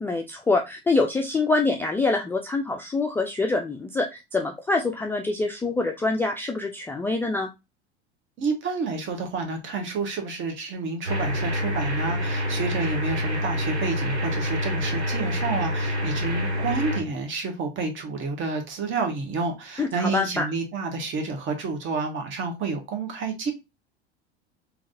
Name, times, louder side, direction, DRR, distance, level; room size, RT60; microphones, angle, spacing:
voice 1, 0.0-7.5 19.8-20.5, left 3 dB, 5° left, 0.3 m, -25 dB
voice 2, 8.4-23.5, right 4 dB, 35° right, 1.3 m, -29 dB
sound 1, 11.1-17.0, left 1 dB, 85° right, 1.1 m, -27 dB
3.8 x 3.0 x 2.5 m
figure-of-eight pair, 75°, 33 cm